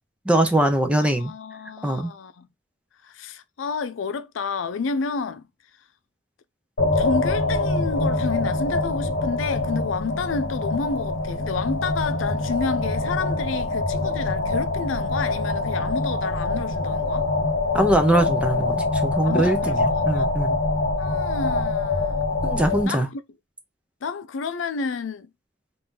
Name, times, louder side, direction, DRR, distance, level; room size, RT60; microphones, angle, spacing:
voice 1, 0.2-1.3 1.8-2.1 17.7-20.6 22.4-23.1, right 1 dB, 5° right, 0.6 m, -22 dB
voice 2, 1.0-2.5 3.0-5.5 6.9-17.3 19.2-20.3 21.0-22.2 22.8-23.2 24.0-25.3, left 5 dB, 85° left, 0.4 m, -30 dB
sound 1, 6.8-22.8, left 2 dB, 65° left, 1.0 m, -24 dB
2.8 x 2.6 x 3.6 m
head